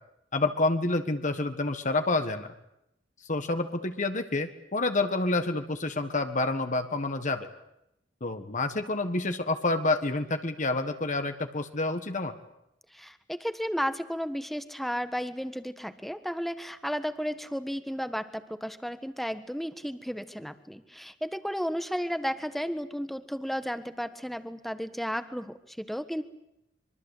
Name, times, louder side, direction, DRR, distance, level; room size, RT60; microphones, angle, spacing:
voice 1, 0.3-2.5 3.3-7.5 8.2-12.3, left 2 dB, 45° left, 8 dB, 1.6 m, -28 dB
voice 2, 12.9-26.2, equal, ahead, 11 dB, 1.4 m, -33 dB
25.0 x 23.0 x 8.4 m, 0.82 s
head